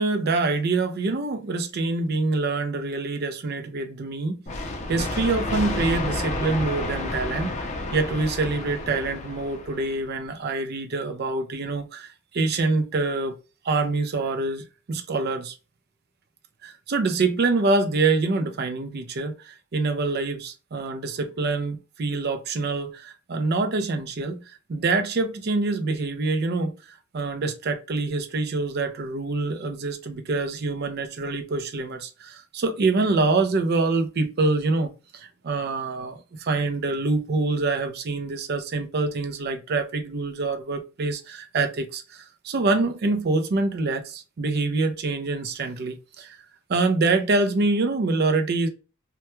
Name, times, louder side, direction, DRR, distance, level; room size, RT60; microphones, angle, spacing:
voice 1, 0.0-4.4 4.9-7.6 7.9-13.4 13.6-15.5 16.6-46.4 46.7-48.7, right 3 dB, 50° right, 0.4 m, -25 dB
sound 1, 4.5-10.1, left 2 dB, 35° left, 0.5 m, -30 dB
2.2 x 2.1 x 2.9 m
head